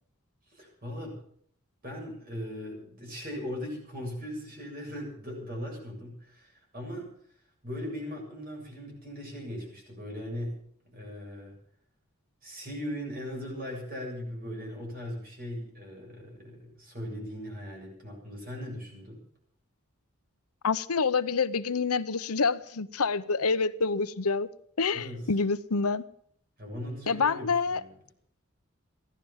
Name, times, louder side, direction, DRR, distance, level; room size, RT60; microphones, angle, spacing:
voice 1, 0.5-1.2 1.8-7.1 7.6-10.6 10.9-11.6 12.4-19.2 24.9-25.3 26.6-27.9, equal, 40° right, 7.7 m, -39 dB
voice 2, 20.6-24.5 24.8-26.0 27.1-27.8, left 4 dB, 90° left, 0.8 m, -27 dB
16.5 x 12.0 x 7.2 m
head